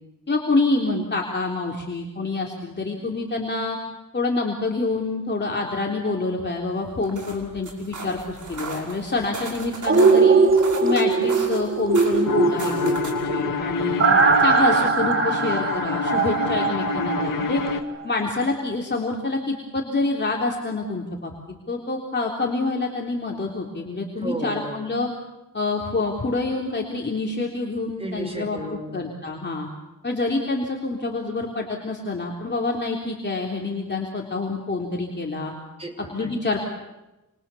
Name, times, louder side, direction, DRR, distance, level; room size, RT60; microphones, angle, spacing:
voice 1, 0.3-3.8 4.1-10.4 10.8-14.0 14.4-17.6 18.0-21.3 21.7-25.1 25.5-28.6 28.9-29.7 30.0-35.5 36.1-36.6, left 3 dB, 35° left, -1 dB, 3.6 m, -26 dB
sound 1, 6.9-13.3, right 3 dB, 65° right, 5.8 m, -37 dB
sound 2, 9.9-17.8 18.1-18.2, right 4 dB, 40° right, 2.1 m, -20 dB
sound 3, 12.2-17.8, left 5 dB, 80° left, 1.9 m, -28 dB
voice 2, 14.1-14.5 24.2-24.9 28.0-29.1 35.8-36.3, right 1 dB, 20° right, 5 dB, 5.8 m, -34 dB
28.5 x 27.5 x 7.1 m, 1.0 s
wide cardioid pair, 100°, 33 cm